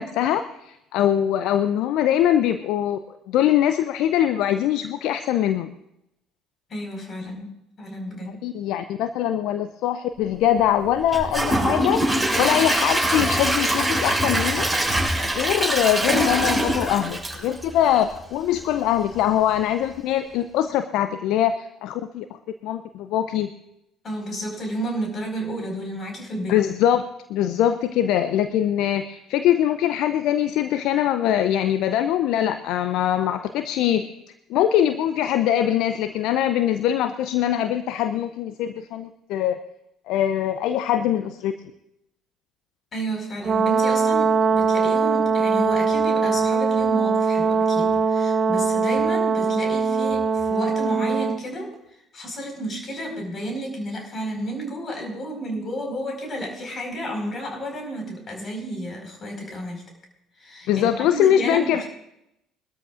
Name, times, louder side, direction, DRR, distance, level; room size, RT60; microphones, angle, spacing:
voice 1, 0.0-3.0 3.3-5.7 8.4-12.0 12.4-14.7 15.2-22.3 22.6-23.5 26.5-27.0 27.3-34.1 34.5-39.6 40.1-41.5 60.7-61.8, left 11 dB, 65° left, 10 dB, 0.6 m, -22 dB
voice 2, 6.7-7.5 7.8-8.4 24.0-26.6 42.9-51.7 52.1-59.8 60.4-61.8, right 1 dB, 40° left, 2 dB, 5.1 m, -31 dB
Gurgling / Toilet flush / Trickle dribble, 11.1-18.1 18.5-18.6 19.1-19.2, right 1 dB, 5° left, 5.9 m, -23 dB
Brass instrument, 43.4-51.4, right 5 dB, 40° right, 0.8 m, -21 dB
22.5 x 13.0 x 2.6 m, 0.82 s
hypercardioid pair, 55°, 0 cm